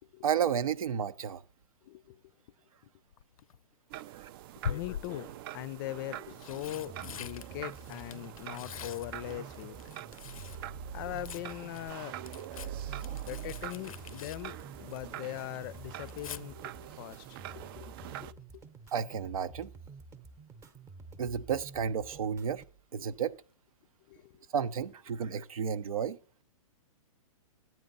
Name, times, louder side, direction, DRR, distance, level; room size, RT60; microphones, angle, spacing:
voice 1, 0.2-1.4 4.2-4.3 18.9-19.7 21.2-22.6 22.9-23.3 24.5-26.2, right 7 dB, 85° right, 0.8 m, -32 dB
voice 2, 1.8-2.2 4.7-5.3 5.5-9.9 10.9-12.1 12.9-13.0 13.3-18.6 24.1-24.4, left 15 dB, 40° left, 0.5 m, -41 dB
Tearing, 3.1-3.6 4.6-5.4 6.1-10.6 10.9-15.2 15.5-16.4 18.3-18.6 18.9-19.0, left 8 dB, 85° left, 0.5 m, -44 dB
sound 1, 3.9-18.3, right 14 dB, 40° right, 0.4 m, -46 dB
sound 2, 6.6-22.6, right 4 dB, 15° right, 0.8 m, -50 dB
10.5 x 9.2 x 4.0 m
hypercardioid pair, 140°, 18 cm